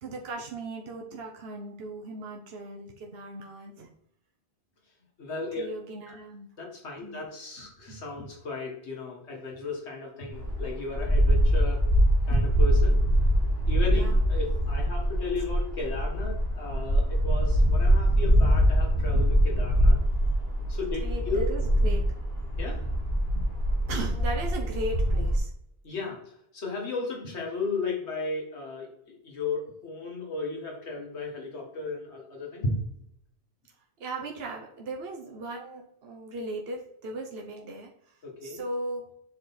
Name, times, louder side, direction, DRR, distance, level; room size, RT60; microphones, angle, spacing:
voice 1, 0.0-3.9 5.6-6.5 7.0-7.2 13.9-14.2 21.0-22.1 23.9-25.5 34.0-38.1 38.4-39.1, right 2 dB, 65° right, 1 dB, 1.2 m, -37 dB
voice 2, 5.2-5.7 6.1-6.2 6.6-11.9 12.2-13.0 13.7-20.0 20.7-21.5 22.6-22.9 25.8-32.8 38.2-38.6, left 3 dB, 85° left, -1 dB, 1.9 m, -34 dB
sound 1, 10.3-25.4, equal, 65° left, 2.0 m, -23 dB
7.6 x 3.9 x 4.2 m, 0.72 s
omnidirectional pair, 1.1 m